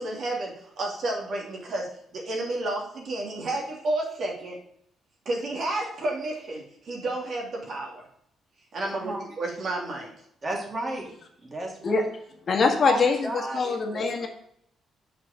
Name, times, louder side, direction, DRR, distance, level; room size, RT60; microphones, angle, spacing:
voice 1, 0.0-4.6 5.2-8.0 8.7-10.1, right 2 dB, 55° right, -1 dB, 2.9 m, -31 dB
voice 2, 10.4-11.1 11.4-12.1 12.9-14.0, right 1 dB, 30° right, 0 dB, 3.1 m, -33 dB
voice 3, 12.5-14.3, left 4 dB, 50° left, 3 dB, 1.7 m, -23 dB
6.7 x 5.9 x 6.6 m, 0.70 s
cardioid pair, 90°, 0 cm